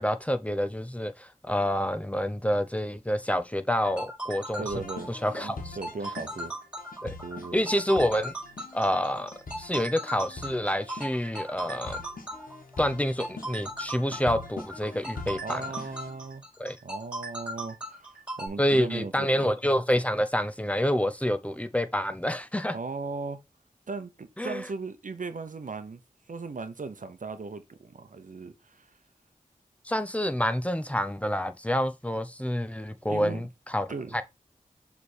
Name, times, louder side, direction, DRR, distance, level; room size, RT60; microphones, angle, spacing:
voice 1, 0.0-4.7 5.1-5.7 7.0-7.2 7.5-8.3 8.7-9.3 9.6-12.0 12.8-15.6 16.6-16.8 18.6-22.7 24.4-24.7 29.8-33.9 34.1-34.2, equal, 10° left, 0.7 m, -28 dB
sound 1, 3.7-18.5, right 1 dB, 10° right, 4.5 m, -38 dB
voice 2, 4.6-6.5 7.2-7.6 15.4-16.4 16.8-19.5 22.7-23.4 23.9-26.0 26.3-28.9 33.1-33.4 33.9-34.2, right 4 dB, 70° right, 0.8 m, -37 dB
sound 2, 4.7-16.2, left 3 dB, 90° left, 1.4 m, -44 dB
6.6 x 3.5 x 4.2 m
wide cardioid pair, 55°, 14 cm